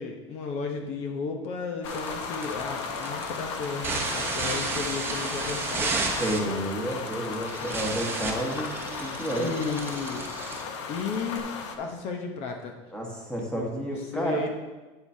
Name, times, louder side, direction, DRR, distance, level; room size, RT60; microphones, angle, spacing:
voice 1, 0.0-6.0 9.3-10.2 10.9-12.7 13.4-14.5, left 5 dB, 45° left, 3 dB, 0.9 m, -34 dB
sound 1, 1.8-11.8, left 5 dB, 80° left, 0.9 m, -36 dB
sound 2, 1.8-11.4, right 3 dB, 15° right, 0.9 m, -33 dB
sound 3, 2.1-2.2 3.0-3.1 3.3-6.1 6.7-6.8 8.7-8.9 9.5-9.7, right 12 dB, 60° right, 0.6 m, -46 dB
voice 2, 6.1-9.5 12.9-14.5, right 1 dB, 5° left, -1 dB, 1.4 m, -31 dB
9.0 x 8.0 x 2.8 m, 1.2 s
supercardioid pair, 145°, 15 cm